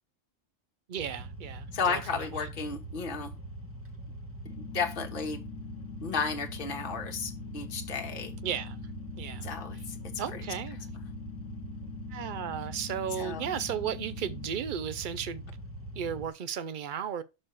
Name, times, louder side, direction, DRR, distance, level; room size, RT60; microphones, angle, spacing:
voice 1, 0.9-2.5 8.4-8.8 9.2-9.5 10.2-10.8 12.1-15.4 16.0-17.2, right 8 dB, 55° right, 0.6 m, -35 dB
sound 1, 1.0-16.3, right 1 dB, 10° right, 1.0 m, -42 dB
voice 2, 1.7-3.3 4.6-5.4 6.0-8.3 9.4-9.8 10.3-10.4 13.2-13.4, left 5 dB, 45° left, 1.3 m, -33 dB
sound 2, 4.5-14.5, left 12 dB, 85° left, 1.2 m, -45 dB
6.4 x 4.3 x 5.7 m
omnidirectional pair, 1.3 m